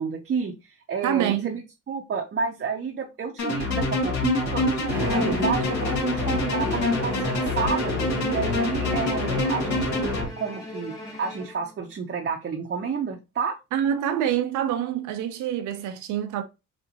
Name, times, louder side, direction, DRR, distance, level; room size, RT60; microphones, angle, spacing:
voice 1, 0.0-1.6 1.9-13.6, right 5 dB, 40° right, 0.7 m, -30 dB
voice 2, 1.0-1.6 13.7-16.4, right 10 dB, 85° right, 0.6 m, -26 dB
sound 1, 3.4-10.3, left 2 dB, 65° left, 2.3 m, -26 dB
Bowed string instrument, 4.9-11.9, left 2 dB, 15° left, 2.3 m, -38 dB
Bowed string instrument 2, 4.9-10.5, equal, 5° right, 1.0 m, -33 dB
4.1 x 3.5 x 2.8 m
cardioid pair, 90°, 30 cm